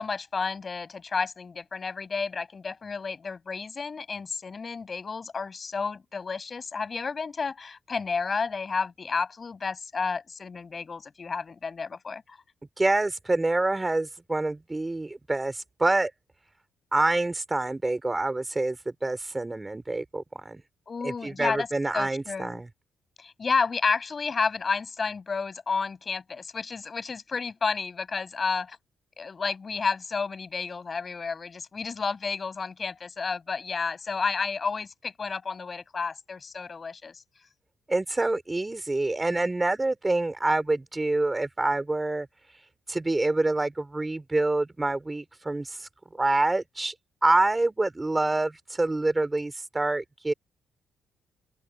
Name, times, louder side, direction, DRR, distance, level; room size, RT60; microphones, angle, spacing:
voice 1, 0.0-12.4 20.9-21.7 21.9-22.6 23.2-28.8 29.2-37.2, left 5 dB, 35° left, 7.7 m, -31 dB
voice 2, 12.8-16.1 16.9-20.6 21.0-22.7 37.9-42.3 42.9-45.9 46.1-46.9 47.2-50.3, right 2 dB, 15° right, 3.6 m, -26 dB
open air
cardioid pair, 90°, 0 cm